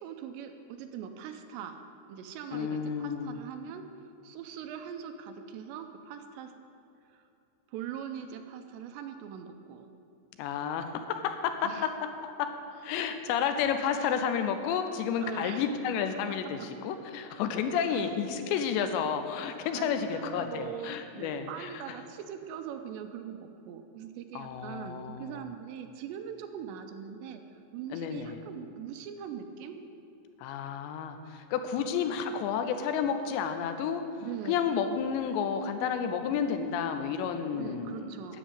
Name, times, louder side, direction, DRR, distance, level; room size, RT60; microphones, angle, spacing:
voice 1, 0.0-1.8 2.1-3.9 4.2-6.5 7.1-7.2 7.7-9.9 11.6-11.9 15.2-15.7 16.6-16.7 17.9-18.1 19.7-29.8 34.2-34.6 37.5-38.4, right 8 dB, 85° right, 6 dB, 2.8 m, -41 dB
voice 2, 2.5-3.4 10.4-12.5 12.8-22.0 24.4-25.5 27.9-28.4 30.4-34.0 34.5-38.4, left 7 dB, 80° left, 7 dB, 2.9 m, -31 dB
10.0 x 7.3 x 8.9 m, 2.7 s
omnidirectional pair, 5.2 m